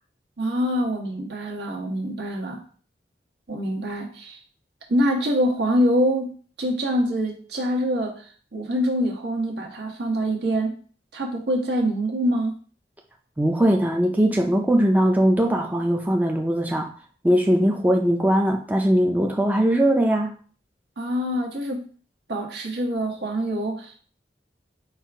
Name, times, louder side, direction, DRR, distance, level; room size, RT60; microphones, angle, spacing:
voice 1, 0.4-2.6 3.5-4.4 4.9-6.3 6.6-8.1 8.5-10.7 11.1-12.5 21.0-21.8 22.3-24.0, equal, 70° right, -1 dB, 1.2 m, -25 dB
voice 2, 13.4-16.9 17.2-20.3, right 1 dB, 10° right, 2 dB, 0.4 m, -20 dB
4.5 x 2.5 x 4.6 m, 0.43 s
head